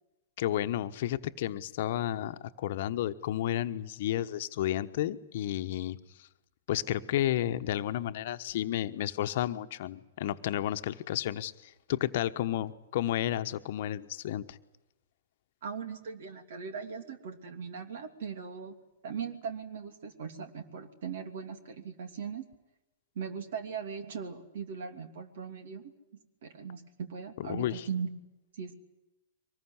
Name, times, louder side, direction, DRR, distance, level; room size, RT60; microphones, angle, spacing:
voice 1, 0.4-6.0 6.7-14.6 27.4-27.9, left 12 dB, 60° left, 10 dB, 1.1 m, -32 dB
voice 2, 15.6-18.7 19.0-22.4 23.1-25.8 26.4-28.1 28.6-28.8, right 6 dB, 65° right, 7 dB, 3.0 m, -39 dB
24.0 x 20.0 x 9.8 m, 0.96 s
hypercardioid pair, 105°, 0 cm